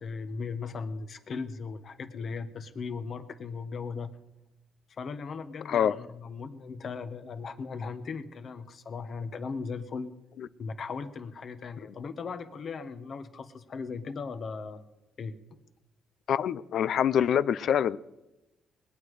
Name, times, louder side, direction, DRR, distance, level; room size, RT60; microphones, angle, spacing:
voice 1, 0.0-4.1 4.9-10.1 10.6-14.8 15.2-15.3, left 5 dB, 50° left, 9 dB, 1.3 m, -37 dB
voice 2, 16.3-18.0, left 9 dB, 65° left, 17 dB, 0.5 m, -25 dB
21.0 x 9.3 x 4.9 m, 0.98 s
cardioid pair, 90°, 0 cm